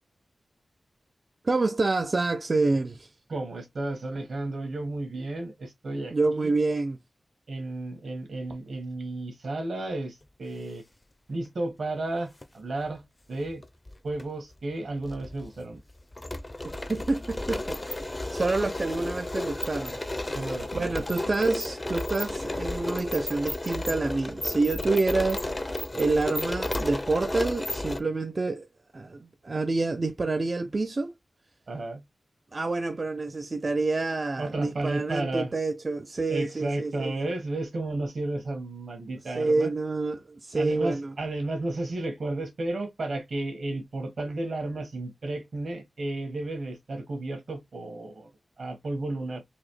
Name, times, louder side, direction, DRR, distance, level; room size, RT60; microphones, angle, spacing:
voice 1, 1.4-3.1 6.1-7.0 16.6-20.0 20.2-20.4 20.7-25.4 25.9-28.7 28.9-31.1 32.5-37.2 39.3-41.1, right 3 dB, 35° right, 0.3 m, -28 dB
voice 2, 3.3-6.5 7.5-10.8 11.3-13.0 13.3-13.6 14.0-15.8 20.3-21.2 31.7-32.0 34.4-35.5 36.3-39.7 40.5-48.3 48.6-49.4, right 2 dB, 70° right, 1.4 m, -33 dB
sound 1, 12.2-12.4 13.5-14.2 14.5-14.6 15.0-28.0, left 1 dB, 20° left, 0.4 m, -33 dB
4.0 x 2.7 x 3.1 m
wide cardioid pair, 120°, 0 cm